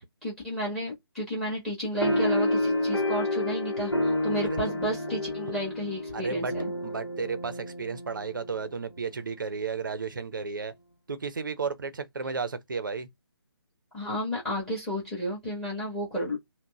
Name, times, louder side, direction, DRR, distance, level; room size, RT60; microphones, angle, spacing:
voice 1, 0.2-6.7 13.9-16.4, equal, 5° left, 1.4 m, -32 dB
sound 1, 2.0-8.9, left 1 dB, 80° left, 1.0 m, -29 dB
voice 2, 6.1-6.5 6.8-10.7 11.1-13.1, right 5 dB, 50° right, 0.6 m, -33 dB
5.8 x 2.1 x 2.3 m
figure-of-eight pair, 150°, 13 cm